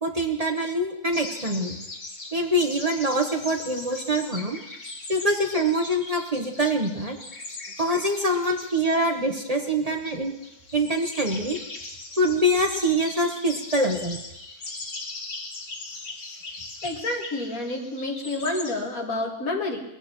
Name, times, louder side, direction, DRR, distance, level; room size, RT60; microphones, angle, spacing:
voice 1, 0.0-1.8 2.3-4.6 5.1-7.2 7.8-10.3 10.7-11.6 12.2-14.2, right 1 dB, 30° right, 3 dB, 1.2 m, -24 dB
sound 1, 1.1-18.7, left 2 dB, 60° left, 2.1 m, -40 dB
voice 2, 16.8-19.8, left 2 dB, 85° left, 1 dB, 2.4 m, -29 dB
21.5 x 15.5 x 3.1 m, 0.86 s
omnidirectional pair, 1.4 m